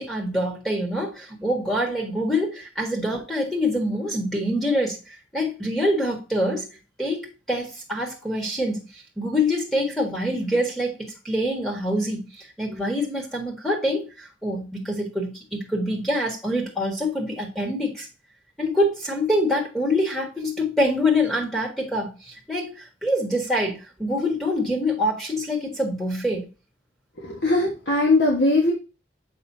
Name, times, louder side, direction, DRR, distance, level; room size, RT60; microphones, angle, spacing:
voice 1, 0.0-6.7 7.0-18.1 18.6-26.5, left 1 dB, ahead, 1.5 m, -25 dB
voice 2, 27.2-28.7, left 2 dB, 80° left, 1.6 m, -20 dB
6.9 x 5.3 x 2.7 m
head